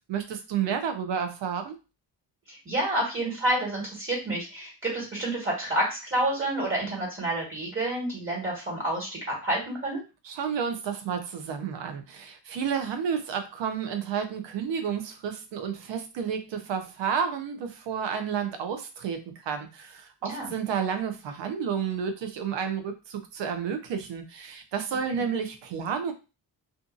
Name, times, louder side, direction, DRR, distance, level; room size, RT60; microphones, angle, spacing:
voice 1, 0.1-1.8 10.2-26.1, right 7 dB, 80° right, 7 dB, 0.7 m, -31 dB
voice 2, 2.5-10.0 20.3-20.5 25.2-25.3, right 1 dB, 30° right, -3 dB, 1.6 m, -29 dB
2.6 x 2.5 x 2.5 m, 0.30 s
cardioid pair, 80°, 43 cm